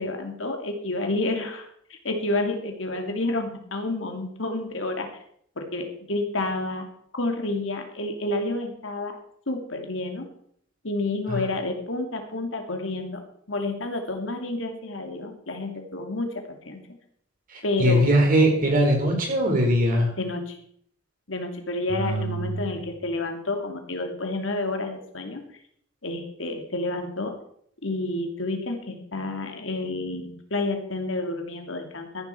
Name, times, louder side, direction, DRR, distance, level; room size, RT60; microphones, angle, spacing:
voice 1, 0.0-5.1 5.6-6.9 7.1-9.2 9.5-10.3 10.8-13.2 13.5-16.8 17.6-18.0 20.2-20.6 21.3-25.4 26.0-27.3 27.8-32.3, left 2 dB, 70° left, 4 dB, 2.7 m, -29 dB
voice 2, 17.5-20.1 21.9-22.5, right 1 dB, 45° right, 1 dB, 5.0 m, -21 dB
14.5 x 11.0 x 4.6 m, 0.65 s
head